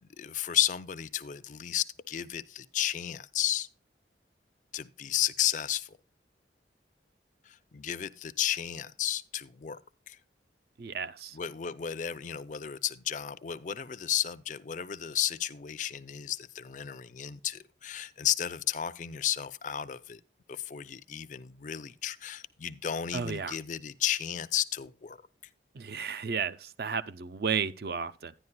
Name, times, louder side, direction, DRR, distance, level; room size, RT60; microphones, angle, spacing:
voice 1, 0.2-3.7 4.7-6.0 7.4-9.8 10.1-10.2 11.3-20.2 20.5-25.2, left 10 dB, 45° left, 0.4 m, -33 dB
voice 2, 10.8-11.4 23.1-23.6 25.7-28.3, right 6 dB, 60° right, 0.5 m, -33 dB
11.0 x 10.5 x 2.2 m
head